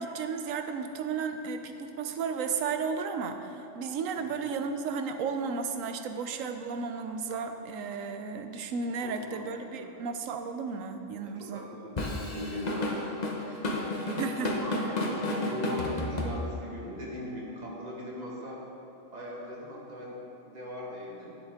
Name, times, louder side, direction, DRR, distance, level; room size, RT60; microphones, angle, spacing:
voice 1, 0.0-11.7 14.2-15.0, right 5 dB, 85° right, 7 dB, 1.0 m, -34 dB
voice 2, 9.0-9.5 9.8-9.9 11.2-13.6 14.0-18.6 19.1-21.4, equal, 35° right, -4 dB, 1.6 m, -39 dB
Drum kit / Drum, 12.0-16.8, left 1 dB, 35° left, 0.9 m, -32 dB
11.0 x 7.2 x 3.7 m, 2.9 s
omnidirectional pair, 1.3 m